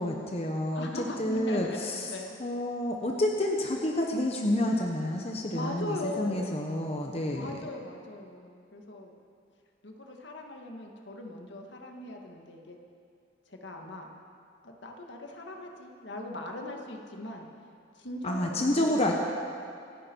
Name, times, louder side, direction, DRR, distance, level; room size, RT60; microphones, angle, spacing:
voice 1, 0.0-2.1 2.4-7.6 18.2-19.1, left 1 dB, 35° left, 1 dB, 1.1 m, -29 dB
voice 2, 0.7-1.8 2.1-2.4 5.5-6.6 7.3-9.1 9.8-12.8 13.5-14.1 14.6-17.5 18.0-19.1, left 1 dB, 70° left, 2 dB, 1.8 m, -39 dB
26.0 x 11.0 x 4.6 m, 2.4 s
head